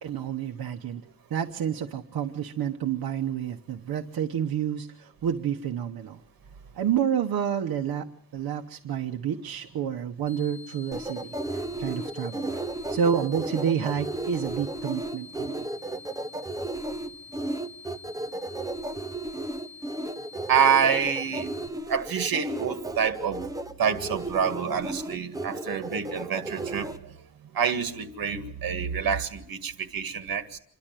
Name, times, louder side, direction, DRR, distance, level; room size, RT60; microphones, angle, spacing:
voice 1, 0.0-1.0 1.3-6.2 6.7-8.1 8.3-12.6 12.9-15.7, right 8 dB, 90° right, 4 dB, 1.1 m, -29 dB
sound 1, 10.3-21.7, left 5 dB, 65° left, 5.0 m, -47 dB
sound 2, 10.9-27.0, right 2 dB, 10° right, 0.7 m, -34 dB
voice 2, 20.5-21.5 21.9-23.4 23.8-30.6, right 7 dB, 70° right, 7 dB, 1.9 m, -27 dB
27.0 x 11.5 x 9.0 m, 0.72 s
wide cardioid pair, 160°, 36 cm